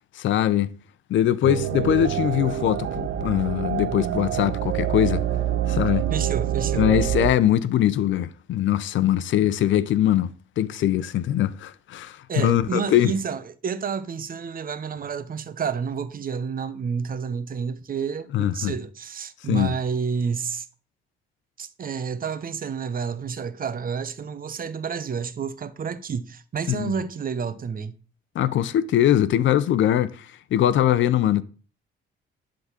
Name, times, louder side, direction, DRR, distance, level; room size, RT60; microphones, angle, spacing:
voice 1, 0.1-0.7 1.1-5.2 5.7-6.1 6.7-10.3 10.6-13.1 18.3-18.7 19.5-19.7 26.7-26.9 28.3-30.3 30.5-31.4, left 11 dB, 75° left, 0.8 m, -22 dB
sound 1, 1.4-7.3, right 11 dB, 70° right, 1.1 m, -26 dB
voice 2, 6.1-6.9 12.3-20.7 21.6-28.0, right 6 dB, 45° right, 1.0 m, -30 dB
11.5 x 3.9 x 7.4 m
cardioid pair, 90°, 20 cm